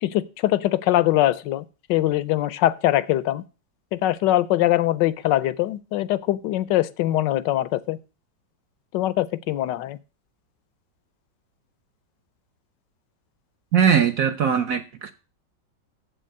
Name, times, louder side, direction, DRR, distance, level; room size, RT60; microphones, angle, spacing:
voice 1, 0.0-3.4 3.9-8.0 8.9-10.0, left 14 dB, 75° left, 1.3 m, -22 dB
voice 2, 13.7-15.1, right 7 dB, 60° right, 0.9 m, -20 dB
7.6 x 6.4 x 7.7 m
omnidirectional pair, 2.0 m